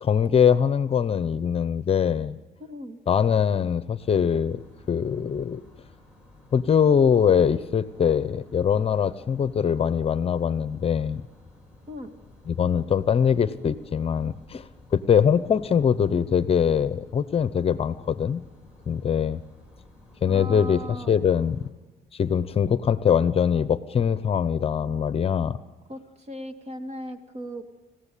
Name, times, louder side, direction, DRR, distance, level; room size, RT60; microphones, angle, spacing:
voice 1, 0.0-2.4 3.1-4.6 4.9-5.6 6.5-11.2 12.5-14.7 14.9-18.4 18.9-19.4 20.2-21.7 22.1-25.6, left 7 dB, 35° left, 15 dB, 0.8 m, -22 dB
voice 2, 2.6-3.0 11.9-12.1 20.3-21.2 25.9-26.0 26.3-27.6, equal, 40° right, 8 dB, 2.4 m, -37 dB
sound 1, 4.0-21.7, left 2 dB, 5° right, 5.4 m, -52 dB
27.0 x 16.0 x 8.5 m, 1.2 s
cardioid pair, 110°, 17 cm